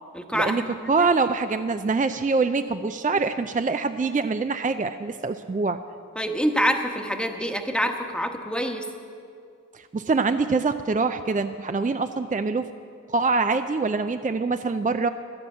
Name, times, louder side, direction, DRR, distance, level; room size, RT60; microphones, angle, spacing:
voice 1, 0.1-1.1 6.2-8.9, equal, 5° left, 4 dB, 1.1 m, -26 dB
voice 2, 0.9-5.8 9.7-12.7 13.1-15.1, right 4 dB, 25° right, 9 dB, 0.4 m, -24 dB
11.5 x 8.0 x 8.4 m, 2.4 s
wide cardioid pair, 40°, 32 cm